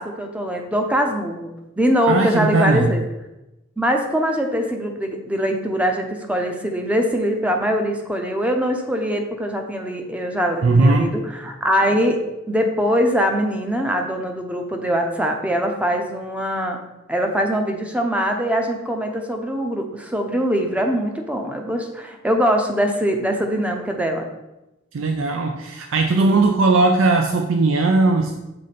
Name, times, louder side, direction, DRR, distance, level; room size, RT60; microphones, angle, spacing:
voice 1, 0.0-3.0 3.8-12.2 12.5-16.8 17.1-24.3, equal, 5° right, 3 dB, 0.6 m, -22 dB
voice 2, 2.1-2.9 10.6-11.1 24.9-28.4, right 3 dB, 85° right, 4 dB, 0.5 m, -18 dB
6.7 x 3.7 x 4.1 m, 0.96 s
head